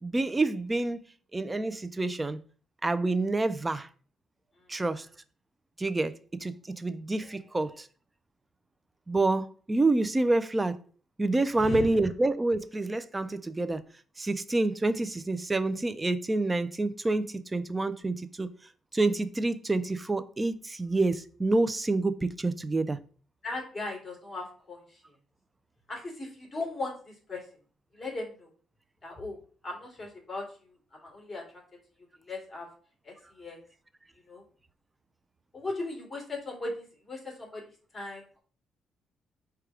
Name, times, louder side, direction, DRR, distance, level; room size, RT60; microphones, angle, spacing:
voice 1, 0.0-1.0 1.3-2.4 2.8-3.9 4.7-5.1 5.8-7.9 9.1-10.8 11.2-13.8 14.2-18.5 18.9-23.0, right 2 dB, 20° right, 0.4 m, -28 dB
voice 2, 11.6-11.9 23.4-25.0 25.9-27.4 28.0-28.5 29.0-29.4 29.6-30.4 31.0-31.4 32.2-32.7 33.0-33.6 34.3-34.4 35.5-37.6 37.9-38.2, left 2 dB, 25° left, 2.4 m, -37 dB
4.6 x 2.3 x 4.8 m
cardioid pair, 90°, 0 cm